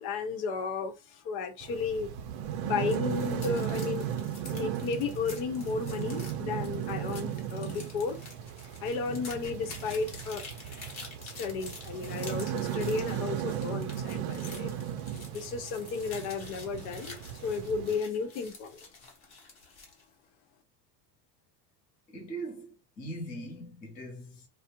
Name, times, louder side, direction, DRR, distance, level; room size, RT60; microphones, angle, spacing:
voice 1, 0.0-2.1 2.6-4.1 4.5-8.2 8.8-10.4 11.2-14.8 15.3-18.9, left 5 dB, 75° left, 0.8 m, -33 dB
sound 1, 1.6-18.0, right 10 dB, 50° right, 0.5 m, -36 dB
sound 2, 2.7-20.0, left 3 dB, 35° left, 0.8 m, -49 dB
voice 2, 22.1-24.5, right 2 dB, 20° left, 0.5 m, -41 dB
2.5 x 2.0 x 2.8 m
cardioid pair, 165°, 46 cm